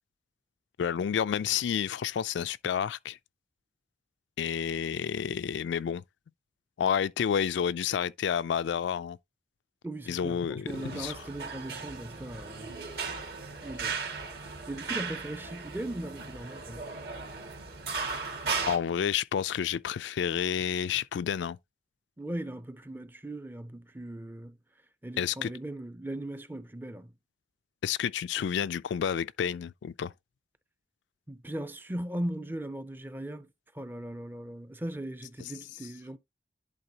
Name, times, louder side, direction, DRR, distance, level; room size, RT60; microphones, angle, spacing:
voice 1, 0.8-3.2 4.4-6.0 6.8-9.2 10.1-11.2 18.7-21.6 25.2-25.5 27.8-30.1, left 8 dB, 85° left, 0.3 m, -30 dB
voice 2, 9.8-12.8 13.6-14.0 14.7-16.8 22.2-24.6 25.0-27.1 31.3-33.5 33.7-36.2, right 1 dB, 10° right, 0.4 m, -38 dB
sound 1, 10.7-18.8, right 4 dB, 60° right, 2.0 m, -37 dB
11.0 x 3.9 x 2.8 m
head